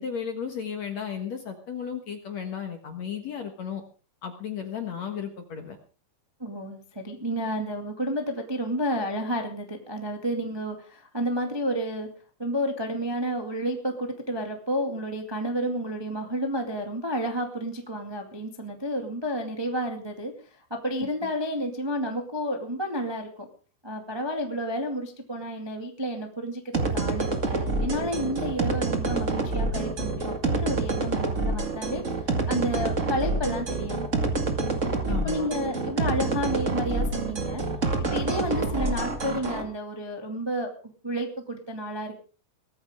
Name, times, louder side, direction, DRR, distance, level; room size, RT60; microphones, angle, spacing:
voice 1, 0.0-3.8 4.2-5.8 21.0-21.1 35.1-35.5, left 7 dB, 55° left, 5 dB, 2.1 m, -34 dB
voice 2, 6.4-12.1 12.4-20.3 20.6-23.5 23.8-32.0 32.5-34.4 35.1-37.6 38.1-40.7 41.0-42.2, equal, 15° right, 3 dB, 0.8 m, -31 dB
sound 1, 26.7-39.6, right 3 dB, 85° right, 0.6 m, -27 dB
19.5 x 14.5 x 3.7 m, 0.38 s
omnidirectional pair, 5.0 m